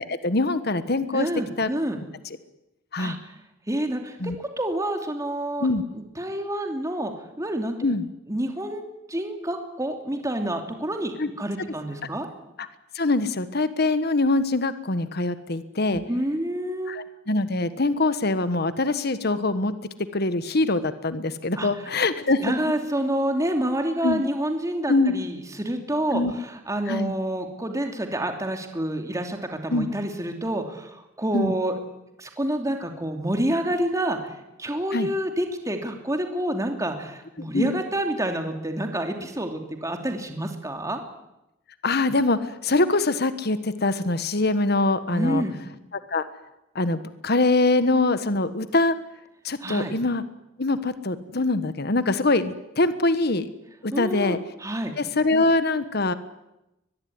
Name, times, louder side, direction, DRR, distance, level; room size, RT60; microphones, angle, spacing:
voice 1, 0.0-1.3 1.6-1.7 2.9-3.2 4.2-4.3 5.6-5.8 7.8-8.1 11.2-11.3 12.9-16.0 16.9-19.7 20.1-22.6 24.0-24.2 24.9-25.1 26.1-26.3 26.9-27.1 29.7-29.9 31.3-31.5 34.9-35.1 37.5-37.7 41.8-45.4 46.1-46.2 46.7-49.0 49.4-50.2 50.6-53.5 53.8-54.4 55.0-56.1, left 2 dB, 55° left, 12 dB, 1.4 m, -23 dB
voice 2, 1.1-2.0 3.0-3.2 3.7-5.7 5.9-7.1 7.4-7.8 8.3-12.3 15.9-17.0 21.6-21.7 22.4-26.2 26.7-31.8 32.2-34.3 34.6-41.0 45.1-45.6 49.6-49.9 53.9-54.9, right 1 dB, 15° right, 4 dB, 3.0 m, -28 dB
23.0 x 20.5 x 9.6 m, 0.92 s
head